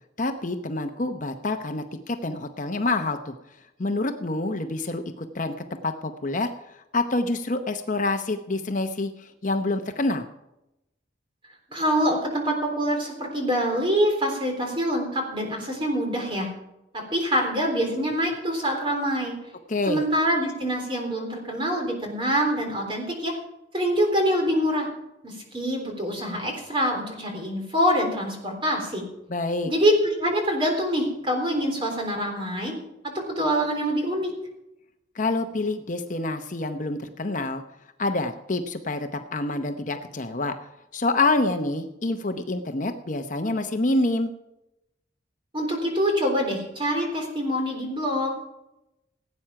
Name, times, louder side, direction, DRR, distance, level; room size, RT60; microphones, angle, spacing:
voice 1, 0.2-3.3 3.8-5.5 5.8-6.5 6.9-10.3 19.7-20.0 29.3-29.7 35.2-37.6 38.0-40.5 40.9-44.3, left 2 dB, 40° left, 6 dB, 0.8 m, -27 dB
voice 2, 11.7-16.5 16.9-19.4 19.9-23.4 23.7-24.9 25.2-29.0 29.6-32.7 33.0-34.3 45.5-48.3, equal, 25° right, 2 dB, 3.7 m, -25 dB
17.0 x 8.8 x 5.8 m, 0.90 s
head